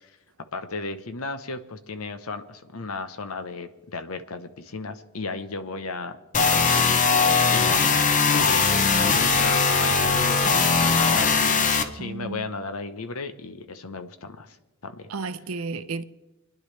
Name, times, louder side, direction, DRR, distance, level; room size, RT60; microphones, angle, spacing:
voice 1, 0.5-6.2 6.5-6.9 7.5-8.6 9.0-14.6 14.8-15.1, left 3 dB, 85° left, 0.9 m, -35 dB
sound 1, 6.3-11.8, left 5 dB, 35° left, 0.7 m, -20 dB
voice 2, 12.0-12.5 15.1-16.0, right 4 dB, 80° right, 0.6 m, -33 dB
27.0 x 10.5 x 3.3 m
head